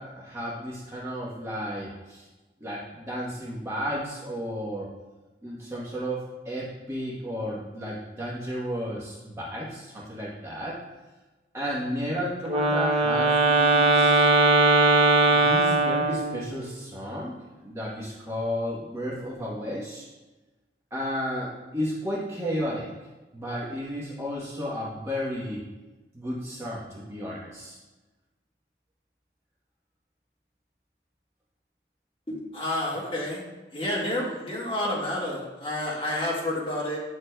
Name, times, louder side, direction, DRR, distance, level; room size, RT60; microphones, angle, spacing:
voice 1, 0.0-2.3 2.6-4.9 5.4-10.8 11.5-14.3 15.2-17.4 17.6-20.1 20.9-22.9 23.3-25.6 26.1-27.8, equal, 15° right, -6 dB, 1.0 m, -33 dB
Wind instrument woodwind instrument, 12.5-16.6, right 3 dB, 30° right, 0.5 m, -20 dB
voice 2, 32.3-33.4 33.7-37.0, left 1 dB, 30° left, -5 dB, 1.6 m, -29 dB
8.9 x 6.3 x 2.2 m, 1.2 s
head